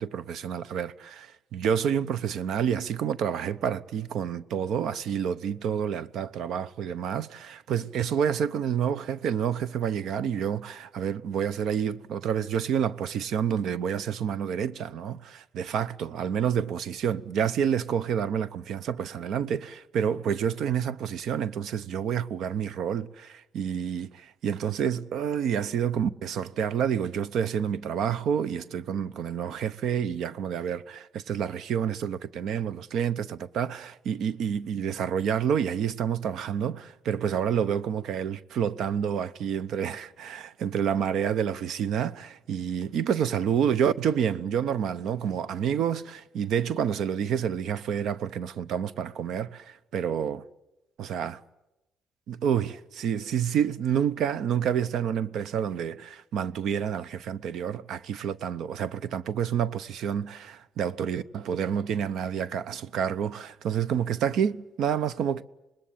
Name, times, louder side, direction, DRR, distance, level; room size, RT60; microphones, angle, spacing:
voice 1, 0.0-50.4 51.0-51.4 52.3-65.4, right 8 dB, 75° right, 0.8 m, -29 dB
26.5 x 20.0 x 8.6 m
cardioid pair, 90°, 0 cm